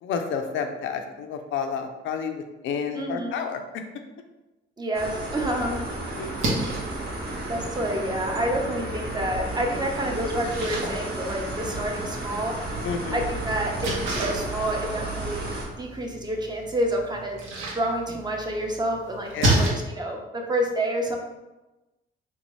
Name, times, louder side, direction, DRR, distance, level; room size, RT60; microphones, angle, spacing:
voice 1, 0.0-3.8 6.1-6.7 12.8-13.3 19.3-19.6, left 6 dB, 75° left, 6 dB, 0.5 m, -31 dB
voice 2, 2.9-3.4 4.8-5.8 7.4-12.5 13.1-15.5 15.8-17.4 17.7-21.2, right 1 dB, 20° right, 1 dB, 0.7 m, -28 dB
sound 1, 4.9-15.7, right 2 dB, 55° right, 1.0 m, -33 dB
Splash splatter, 6.2-19.7, right 1 dB, 85° right, 0.9 m, -32 dB
3.6 x 2.7 x 3.1 m, 1.1 s
cardioid pair, 90°, 20 cm